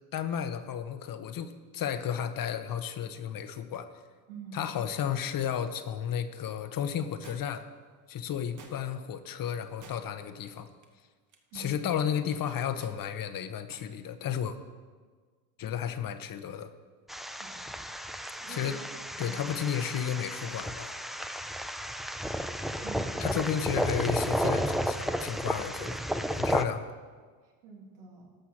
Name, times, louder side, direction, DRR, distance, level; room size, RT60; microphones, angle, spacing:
voice 1, 0.1-3.9 4.5-7.7 8.1-10.7 11.5-14.6 15.6-16.7 18.5-18.8 19.2-20.9 23.2-26.0 26.3-26.8, left 9 dB, 50° left, 10 dB, 0.9 m, -33 dB
voice 2, 4.3-4.6 11.5-11.9 17.4-17.7 18.4-18.8 19.2-19.5 22.8-23.6 27.6-28.3, right 5 dB, 85° right, -2 dB, 2.6 m, -46 dB
sound 1, 7.2-7.7 8.6-9.1 9.8-10.3 10.7-10.9 11.3-11.8 12.5-13.0 13.7-13.9 14.2-14.3, right 4 dB, 40° right, 1.2 m, -52 dB
sound 2, 17.1-26.6, equal, ahead, 0.3 m, -32 dB
13.0 x 5.7 x 6.0 m, 1.5 s
supercardioid pair, 90°, 45 cm